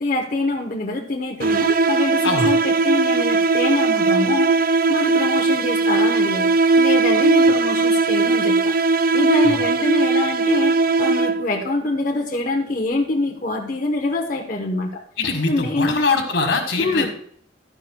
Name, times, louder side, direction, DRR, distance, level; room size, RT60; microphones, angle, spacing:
voice 1, 0.0-6.5 6.8-10.7 11.0-15.0 15.5-16.0 16.8-17.1, left 2 dB, 45° left, 1 dB, 0.9 m, -25 dB
sound 1, 1.4-11.6, right 3 dB, 50° right, 0.4 m, -18 dB
voice 2, 15.2-17.1, left 3 dB, 80° left, 4 dB, 1.6 m, -22 dB
12.0 x 9.5 x 2.2 m, 0.63 s
head